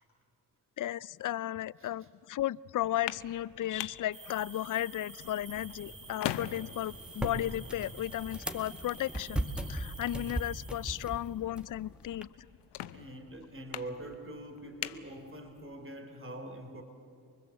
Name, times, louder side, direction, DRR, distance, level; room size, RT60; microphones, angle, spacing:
voice 1, 0.8-12.5, left 13 dB, 50° left, 22 dB, 0.5 m, -35 dB
sound 1, 2.8-15.8, left 12 dB, 80° left, 0.8 m, -45 dB
sound 2, 4.1-11.4, right 3 dB, 55° right, 3.6 m, -50 dB
sound 3, 5.2-12.2, right 1 dB, ahead, 1.9 m, -39 dB
voice 2, 12.9-16.8, right 1 dB, 30° right, 5 dB, 3.4 m, -44 dB
25.0 x 20.5 x 7.7 m, 2.5 s
supercardioid pair, 50°, 40 cm